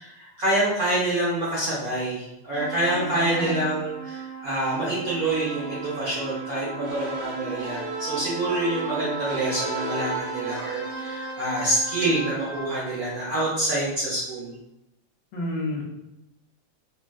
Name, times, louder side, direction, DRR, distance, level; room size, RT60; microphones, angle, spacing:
voice 1, 0.0-14.6, right 1 dB, 65° right, -7 dB, 0.9 m, -27 dB
sound 1, 2.5-13.8, right 3 dB, 85° right, 0.6 m, -35 dB
voice 2, 2.8-3.7 15.3-15.8, left 1 dB, 75° left, -1 dB, 1.3 m, -30 dB
3.7 x 2.5 x 2.3 m, 0.91 s
omnidirectional pair, 2.3 m